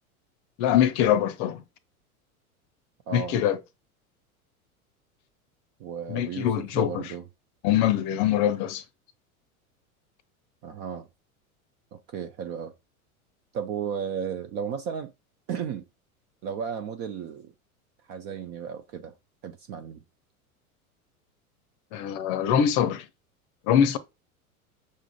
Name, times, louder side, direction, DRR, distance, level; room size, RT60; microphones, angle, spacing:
voice 1, 0.6-1.6 3.1-3.6 6.1-7.0 7.6-8.8 21.9-23.1 23.7-24.0, left 10 dB, 40° left, 0.7 m, -23 dB
voice 2, 3.1-3.4 5.8-7.2 10.6-11.1 11.9-12.7 13.5-15.1 15.5-15.8 16.4-17.5 18.1-19.1 19.4-20.0, right 7 dB, 25° right, 0.3 m, -34 dB
6.2 x 3.7 x 2.2 m
figure-of-eight pair, 85°, 44 cm